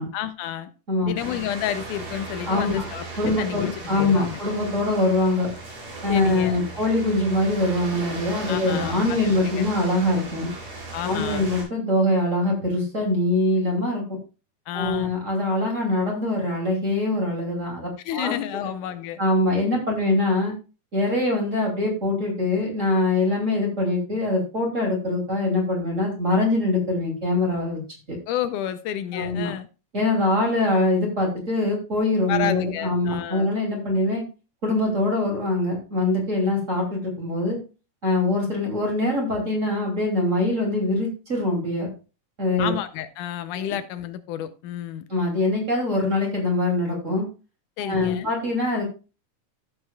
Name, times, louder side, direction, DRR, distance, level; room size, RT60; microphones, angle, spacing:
voice 1, 0.1-0.7 1.1-4.4 6.1-6.7 8.5-9.2 9.6-9.7 10.9-11.5 14.7-15.1 18.0-19.2 28.3-29.7 32.3-33.5 42.6-45.0 47.8-48.3, left 11 dB, 80° left, 11 dB, 2.2 m, -30 dB
sound 1, 1.2-11.6, right 2 dB, 80° right, 6.6 m, -37 dB
voice 2, 2.5-2.8 3.2-5.5 6.0-10.5 11.0-14.2 14.7-18.3 19.2-20.5 20.9-27.8 28.1-28.2 29.1-29.5 29.9-34.2 34.6-37.6 38.0-41.9 42.4-42.7 43.7-43.8 45.1-47.3 47.8-48.8, left 2 dB, 25° right, 0 dB, 2.8 m, -23 dB
15.0 x 7.1 x 2.3 m, 0.32 s
omnidirectional pair, 3.6 m